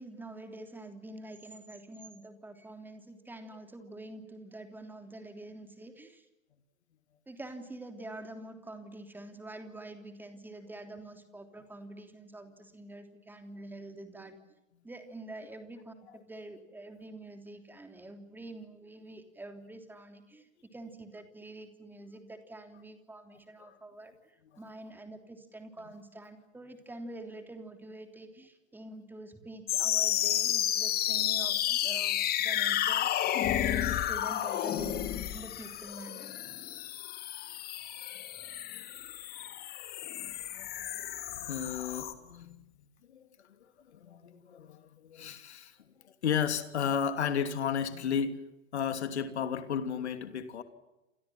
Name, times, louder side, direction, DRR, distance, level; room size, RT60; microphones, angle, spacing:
voice 1, 0.0-6.2 7.3-14.3 14.8-36.3, right 2 dB, 5° right, 7 dB, 3.3 m, -46 dB
sound 1, 29.7-42.1, left 12 dB, 25° left, 2.3 m, -31 dB
voice 2, 40.6-40.9 41.5-42.6 43.1-43.2 43.9-45.7 46.2-48.4 48.7-50.6, left 7 dB, 60° left, 10 dB, 3.0 m, -33 dB
29.0 x 27.5 x 6.1 m, 0.97 s
figure-of-eight pair, 100°, 38 cm